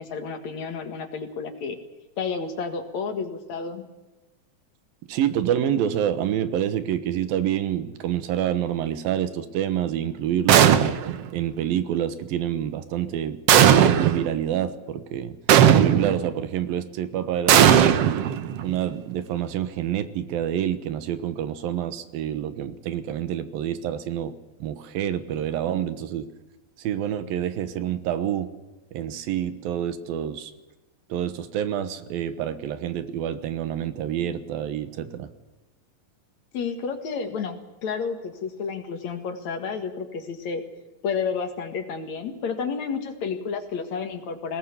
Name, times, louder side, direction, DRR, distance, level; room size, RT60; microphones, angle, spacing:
voice 1, 0.0-1.8 2.2-3.9 36.5-40.6 41.0-44.6, left 5 dB, 55° left, 7 dB, 2.8 m, -31 dB
voice 2, 5.1-10.9 11.3-13.4 13.7-15.4 15.8-18.0 18.6-24.3 24.6-26.3 26.8-28.5 28.9-30.5 31.1-35.3, right 10 dB, 85° right, 12 dB, 3.1 m, -27 dB
sound 1, 10.5-11.2 13.5-14.3 15.5-16.3 17.5-18.7, right 9 dB, 65° right, 1.5 m, -16 dB
21.0 x 18.0 x 8.2 m, 1.1 s
omnidirectional pair, 4.1 m